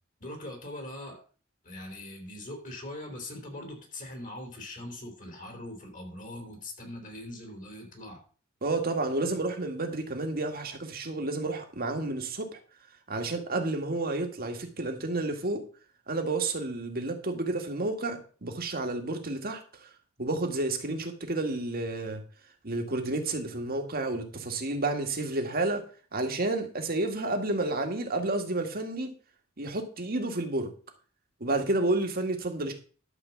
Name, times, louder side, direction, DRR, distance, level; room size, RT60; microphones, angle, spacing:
voice 1, 0.2-1.2 1.6-8.2, left 1 dB, 40° left, 3.7 m, -41 dB
voice 2, 8.6-12.6 13.1-15.6 16.1-19.9 20.2-22.2 22.6-25.8 26.1-29.1 29.6-30.7 31.4-32.7, right 2 dB, 45° right, 1.9 m, -30 dB
12.0 x 4.9 x 7.2 m
head